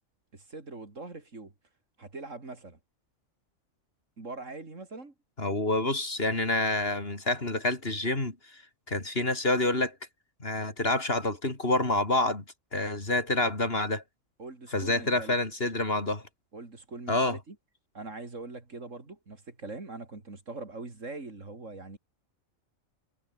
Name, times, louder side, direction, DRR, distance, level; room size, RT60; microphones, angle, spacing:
voice 1, 0.3-1.5 2.0-2.8 4.2-5.1 14.4-15.4 16.5-17.6 17.9-22.0, right 3 dB, 65° right, 3.7 m, -42 dB
voice 2, 5.4-8.4 8.9-9.9 10.4-12.4 12.7-14.0 14.7-16.2 17.1-17.4, left 2 dB, 45° left, 4.1 m, -27 dB
omnidirectional pair, 1.4 m